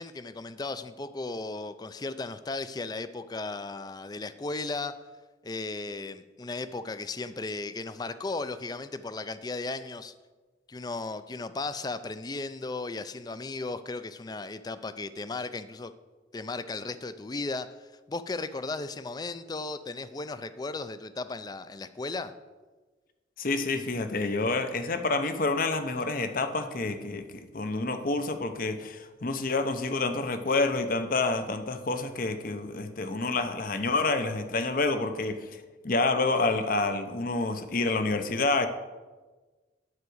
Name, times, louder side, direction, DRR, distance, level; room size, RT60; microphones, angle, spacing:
voice 1, 0.0-5.0 5.4-10.1 10.7-15.9 16.3-22.3, left 3 dB, 20° left, 12 dB, 0.4 m, -36 dB
voice 2, 23.4-38.7, left 3 dB, 50° left, 9 dB, 0.7 m, -28 dB
9.6 x 4.8 x 7.8 m, 1.3 s
head